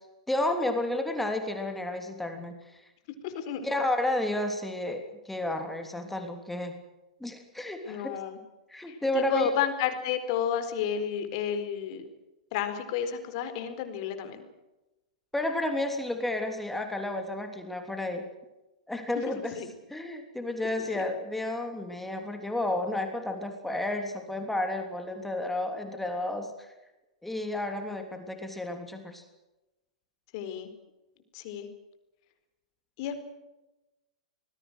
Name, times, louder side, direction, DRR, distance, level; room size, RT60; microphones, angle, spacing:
voice 1, 0.3-2.8 3.6-6.7 7.2-8.2 8.7-9.5 15.3-18.3 18.9-19.5 19.9-26.7 27.2-29.2, left 1 dB, 5° left, 5 dB, 3.3 m, -31 dB
voice 2, 3.2-3.7 7.8-8.4 8.9-12.0 12.5-14.5 19.6-19.7 20.8-21.1 30.3-30.7 31.3-31.7 33.0-33.2, left 9 dB, 50° left, 10 dB, 4.3 m, -31 dB
26.5 x 21.0 x 6.4 m, 1.0 s
figure-of-eight pair, 100°, 4 cm